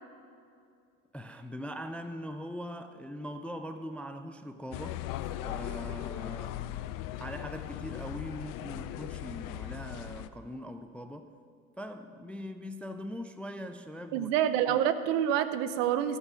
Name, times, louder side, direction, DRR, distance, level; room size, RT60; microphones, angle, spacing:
voice 1, 1.1-5.0 5.4-6.6 7.2-11.3 11.8-14.3 14.7-14.8, equal, 5° left, 8 dB, 0.3 m, -41 dB
sound 1, 4.7-10.3, left 12 dB, 55° left, 0.6 m, -38 dB
voice 2, 14.1-16.2, right 10 dB, 70° right, 12 dB, 0.8 m, -27 dB
16.0 x 5.5 x 6.2 m, 2.4 s
hypercardioid pair, 90°, 39 cm